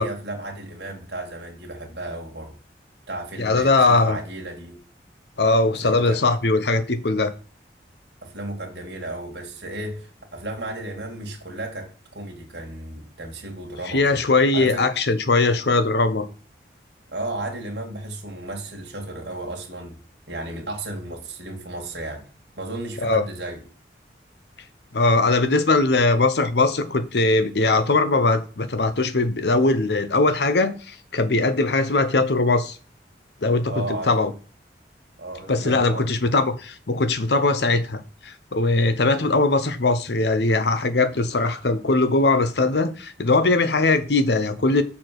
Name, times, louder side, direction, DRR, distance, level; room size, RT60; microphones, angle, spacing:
voice 1, 0.0-2.6 3.1-4.8 5.8-6.2 8.2-14.2 14.5-14.9 17.1-20.0 20.3-22.3 22.6-23.6 33.7-34.1 35.2-36.4, right 2 dB, 70° right, 2.0 m, -34 dB
voice 2, 3.4-4.2 5.4-7.3 13.9-16.3 23.0-23.2 24.9-32.8 33.4-34.3 35.5-44.8, left 3 dB, 70° left, 0.8 m, -20 dB
6.7 x 4.3 x 6.0 m
head